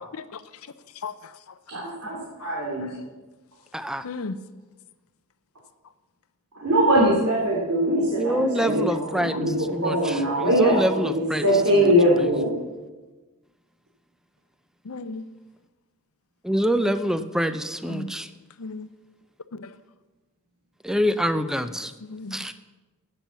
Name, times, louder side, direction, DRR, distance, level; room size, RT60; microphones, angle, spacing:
voice 1, 1.7-2.8 6.6-12.6, equal, 85° right, -4 dB, 2.8 m, -22 dB
voice 2, 4.0-4.4 9.3-9.4 14.9-15.2 17.9-18.1 18.6-18.9 19.6-19.7 22.1-22.4, left 3 dB, 70° left, 13 dB, 0.6 m, -34 dB
voice 3, 8.2-9.9 10.4-11.4 16.4-18.3 20.8-21.9 22.3-22.5, equal, ahead, 11 dB, 0.5 m, -25 dB
11.5 x 8.9 x 6.9 m, 1.2 s
head